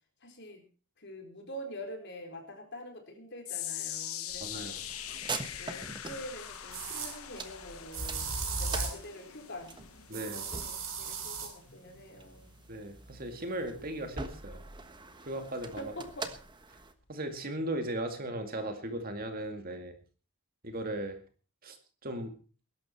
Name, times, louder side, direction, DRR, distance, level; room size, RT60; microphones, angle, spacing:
voice 1, 0.2-0.6 1.0-4.8 5.6-9.7 10.1-12.5 15.8-16.4, equal, 50° left, 3 dB, 4.0 m, -45 dB
sound 1, 3.4-15.8 16.1-16.4 17.1-17.2, left 11 dB, 70° left, 1.4 m, -44 dB
sound 2, 4.3-16.9, right 3 dB, 20° right, 1.3 m, -45 dB
voice 2, 4.4-4.8 10.1-10.4 12.7-14.6 15.3-15.9 17.1-20.0 20.6-21.2 21.6-21.8 22.0-22.3, right 1 dB, 40° right, 6 dB, 2.3 m, -37 dB
sound 3, 5.5-5.6 6.7-7.1 7.9-9.0 10.1-11.5, right 4 dB, 65° right, 4.1 m, -36 dB
20.0 x 11.5 x 4.4 m, 0.38 s
head